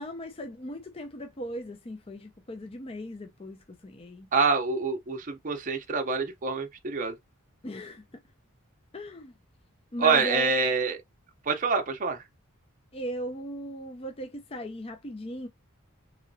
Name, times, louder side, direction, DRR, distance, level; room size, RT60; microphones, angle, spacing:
voice 1, 0.0-4.3 7.6-8.0 8.9-9.3 9.9-10.5 12.9-15.5, equal, 25° left, 0.5 m, -37 dB
voice 2, 4.3-7.2 10.0-11.0 11.5-12.3, right 4 dB, 40° right, 0.6 m, -26 dB
3.8 x 3.0 x 2.6 m
head